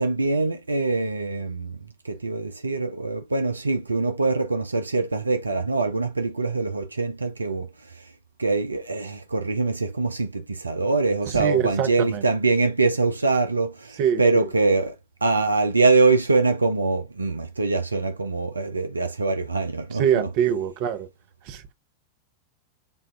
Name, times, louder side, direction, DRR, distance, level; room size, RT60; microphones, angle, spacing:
voice 1, 0.0-1.8 2.0-8.1 8.4-15.0 15.2-20.3, right 3 dB, 80° right, 0.4 m, -23 dB
voice 2, 11.3-12.2 14.0-14.2 19.9-21.1 21.5-21.6, right 9 dB, 45° right, 0.8 m, -24 dB
6.9 x 2.4 x 2.3 m
figure-of-eight pair, 90°, 0 cm